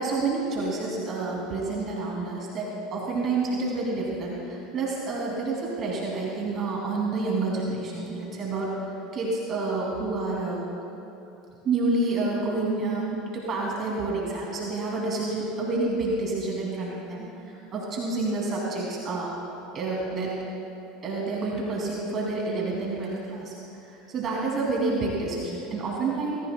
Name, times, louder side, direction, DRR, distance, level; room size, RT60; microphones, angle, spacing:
voice 1, 0.0-8.7 9.1-10.6 11.6-19.3 19.7-20.4 21.0-23.5 23.9-26.4, right 3 dB, 40° right, -3 dB, 2.5 m, -29 dB
21.5 x 14.5 x 2.2 m, 2.9 s
hypercardioid pair, 85°, 0 cm